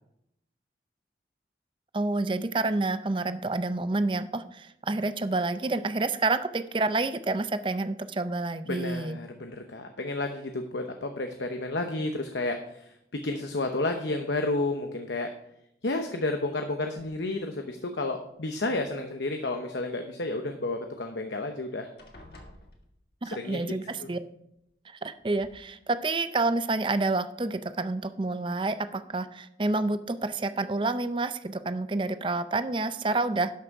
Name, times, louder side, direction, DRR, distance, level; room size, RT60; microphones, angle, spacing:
voice 1, 1.9-9.2 23.2-24.2 25.0-33.5, right 3 dB, 30° right, 12 dB, 0.5 m, -28 dB
voice 2, 8.6-15.3 15.8-21.9 23.2-24.1, left 2 dB, 85° left, 5 dB, 0.9 m, -31 dB
sound 1, 18.5-19.2 21.0-21.1 21.4-21.6 22.0-23.4 24.6-24.7 25.2-25.6, left 1 dB, 60° left, 1.6 m, -53 dB
11.5 x 6.2 x 4.7 m, 0.78 s
head